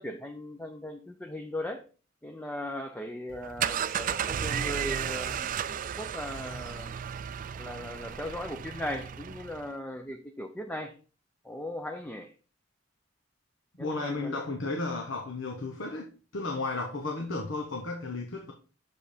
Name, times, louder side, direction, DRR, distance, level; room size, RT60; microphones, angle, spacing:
voice 1, 0.0-1.8 2.2-6.9 7.6-11.0 11.4-12.3 13.8-14.4, left 1 dB, 10° left, 0.6 m, -38 dB
sound 1, 3.3-9.7, right 8 dB, 45° right, 0.3 m, -34 dB
voice 2, 13.8-18.5, left 3 dB, 75° left, 1.0 m, -34 dB
6.7 x 5.2 x 4.3 m
head